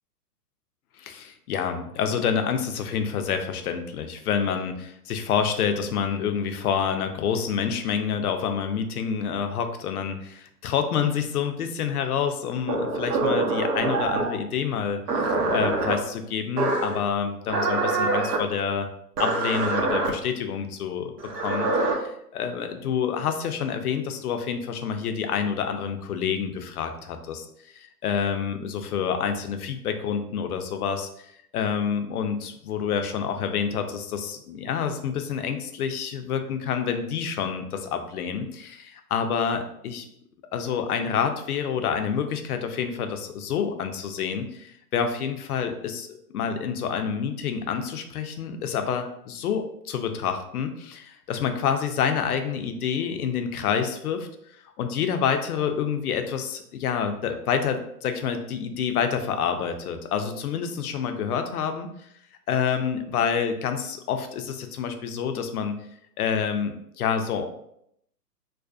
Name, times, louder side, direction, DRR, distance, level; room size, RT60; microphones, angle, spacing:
voice 1, 1.0-15.0 15.5-18.9 19.2-27.5 27.7-31.1 31.5-40.1 40.5-54.3 54.8-61.9 62.5-65.8 66.2-67.5, left 7 dB, 70° left, 7 dB, 0.5 m, -28 dB
sound 1, 12.7-14.4 15.1-16.0 16.6-17.0 17.5-18.4 19.2-20.1 21.2-21.9, right 3 dB, 80° right, 0.6 m, -25 dB
2.4 x 2.1 x 2.3 m, 0.75 s
hypercardioid pair, 125°, 48 cm